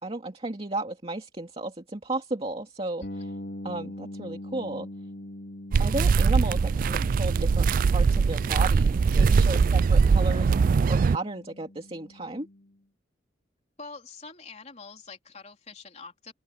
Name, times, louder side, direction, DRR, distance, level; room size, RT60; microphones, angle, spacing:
voice 1, 0.0-3.3 3.6-4.9 5.8-12.5, right 2 dB, 30° right, 2.4 m, -34 dB
sound 1, 3.0-12.7, left 1 dB, 65° left, 4.1 m, -43 dB
sound 2, 5.7-11.2, right 5 dB, 50° right, 0.3 m, -21 dB
voice 2, 13.8-16.3, left 4 dB, 40° left, 3.7 m, -45 dB
head